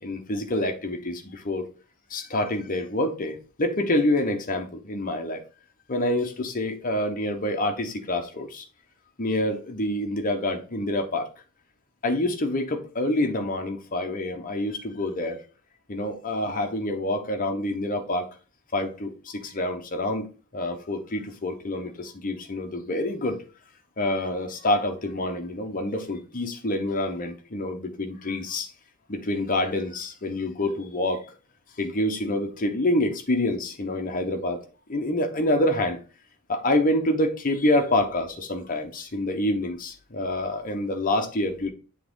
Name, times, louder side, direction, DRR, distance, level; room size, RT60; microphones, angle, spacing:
voice 1, 0.0-1.7 2.1-5.4 5.9-8.6 9.2-11.3 12.0-15.4 15.9-18.3 18.7-20.3 20.5-23.4 24.0-28.7 29.1-31.3 31.8-34.6 34.9-36.0 36.5-41.7, left 1 dB, 40° left, 1.0 m, -27 dB
7.5 x 3.6 x 3.7 m
head